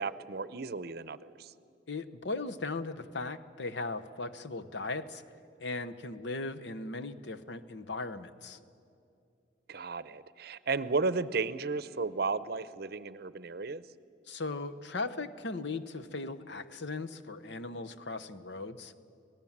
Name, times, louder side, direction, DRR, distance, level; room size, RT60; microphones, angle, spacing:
voice 1, 0.0-1.5 9.7-13.8, right 4 dB, 60° right, 16 dB, 0.7 m, -34 dB
voice 2, 1.9-5.2 5.6-8.6 14.3-18.9, left 3 dB, 70° left, 12 dB, 0.9 m, -38 dB
25.5 x 18.0 x 7.3 m, 2.6 s
head